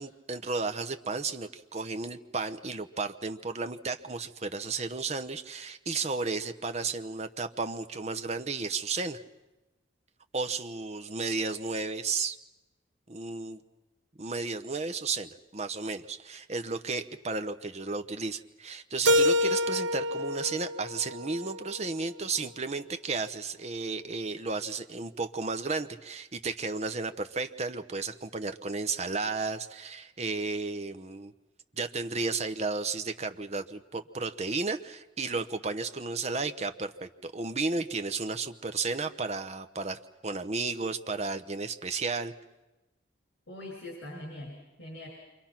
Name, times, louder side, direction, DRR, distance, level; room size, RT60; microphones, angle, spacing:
voice 1, 0.0-9.2 10.3-12.4 13.1-13.6 14.2-31.3 31.8-42.3, right 4 dB, 35° right, 9 dB, 0.9 m, -33 dB
Keyboard (musical), 19.1-22.0, left 1 dB, 85° right, 0.8 m, -27 dB
voice 2, 43.5-45.1, left 1 dB, 70° left, -2 dB, 6.3 m, -42 dB
28.0 x 25.0 x 5.9 m, 1.0 s
head